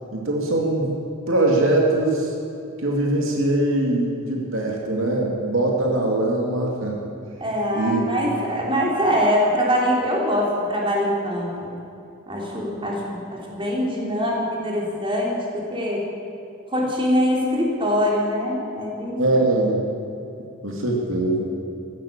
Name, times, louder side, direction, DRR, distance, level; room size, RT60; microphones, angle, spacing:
voice 1, 0.1-0.9 1.3-2.3 2.8-7.0 7.7-8.3 19.2-19.8 20.6-21.5, right 2 dB, 75° right, -1 dB, 2.5 m, -22 dB
voice 2, 7.4-11.7 12.3-16.1 16.7-19.2, equal, 25° right, -2 dB, 3.4 m, -23 dB
15.0 x 12.5 x 7.3 m, 2.7 s
head